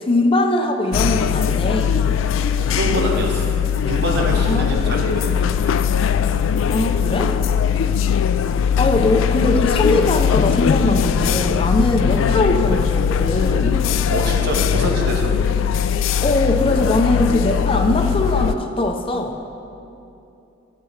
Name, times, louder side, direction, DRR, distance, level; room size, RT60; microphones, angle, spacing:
voice 1, 0.1-1.9 4.5-4.8 6.7-7.3 8.8-13.8 16.2-19.4, left 2 dB, 30° left, 4 dB, 0.5 m, -20 dB
sound 1, 0.9-18.5, left 7 dB, 85° left, 0.4 m, -20 dB
voice 2, 2.6-3.4 3.9-5.8 7.8-8.0 11.8-11.9 14.1-15.4, right 1 dB, 55° right, 0 dB, 1.3 m, -26 dB
12.5 x 8.4 x 3.2 m, 2.8 s
head